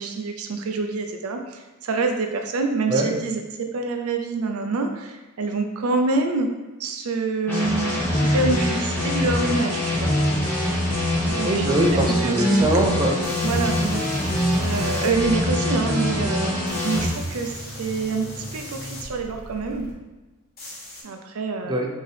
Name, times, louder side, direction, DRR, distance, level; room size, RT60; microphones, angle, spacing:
voice 1, 0.0-6.5 6.8-10.1 11.3-11.7 12.2-12.7 13.4-19.9 21.0-21.8, right 3 dB, 70° right, 4 dB, 0.5 m, -26 dB
sound 1, 7.5-17.1, left 1 dB, 10° left, 1.3 m, -23 dB
voice 2, 11.4-13.1 21.7-21.9, right 1 dB, 20° right, 0 dB, 0.5 m, -22 dB
sound 2, 13.2-15.3 16.7-19.9 20.6-21.0, left 1 dB, 45° left, 1.2 m, -37 dB
4.7 x 2.8 x 3.3 m, 1.1 s
head